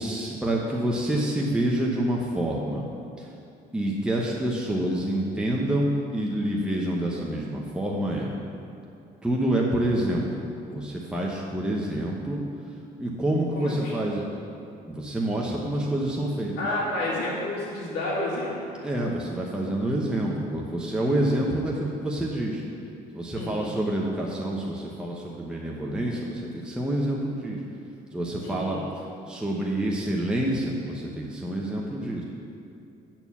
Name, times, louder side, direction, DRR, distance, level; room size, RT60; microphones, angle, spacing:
voice 1, 0.0-2.9 3.2-3.3 3.7-8.3 9.2-12.4 13.0-14.3 14.9-16.5 18.8-22.6 23.1-27.6 28.1-32.2, right 1 dB, 5° right, -3 dB, 0.9 m, -27 dB
voice 2, 13.5-13.9 16.6-18.8 23.3-23.7 28.4-28.9, left 1 dB, 90° left, -8 dB, 1.8 m, -30 dB
8.7 x 4.5 x 7.2 m, 2.6 s
cardioid pair, 110°, 17 cm